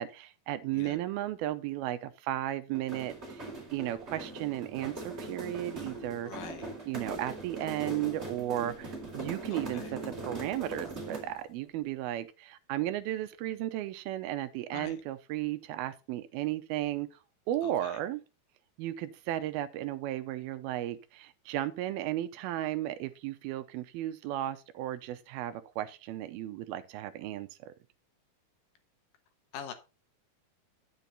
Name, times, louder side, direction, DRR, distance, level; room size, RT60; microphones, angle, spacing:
voice 1, 0.0-3.5 3.7-6.3 6.9-17.1 17.5-18.2 18.8-27.7, right 13 dB, 80° right, 2.6 m, -34 dB
sound 1, 2.7-11.4, right 2 dB, 15° right, 3.3 m, -41 dB
voice 2, 6.2-6.7 9.5-9.9 14.7-15.0 17.6-18.0 29.5-29.7, left 8 dB, 70° left, 2.7 m, -44 dB
10.0 x 6.9 x 4.0 m
omnidirectional pair, 4.4 m